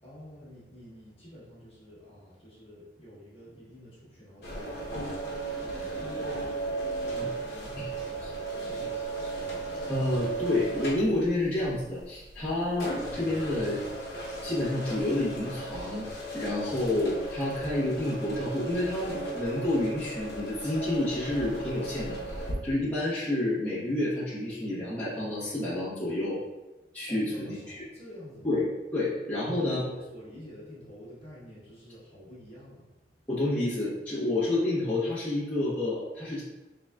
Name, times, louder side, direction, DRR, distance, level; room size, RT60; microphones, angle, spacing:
voice 1, 0.0-9.1 27.1-28.5 29.6-32.9, equal, 35° left, -7 dB, 1.2 m, -49 dB
sound 1, 4.4-22.5, right 2 dB, 60° left, 0.9 m, -36 dB
voice 2, 9.9-13.8 14.4-16.0 16.3-26.4 26.9-27.8 28.4-29.8 33.3-36.4, left 1 dB, 10° left, -11 dB, 1.0 m, -29 dB
3.9 x 3.6 x 2.3 m, 1.0 s
head